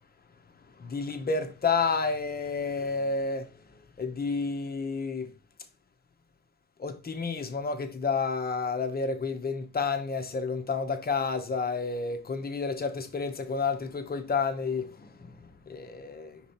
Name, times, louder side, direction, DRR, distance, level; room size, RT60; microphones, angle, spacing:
voice 1, 0.8-3.7 4.0-5.3 6.8-16.4, left 4 dB, 30° left, 1.2 m, -30 dB
5.2 x 4.2 x 4.5 m
cardioid pair, 90°, 30 cm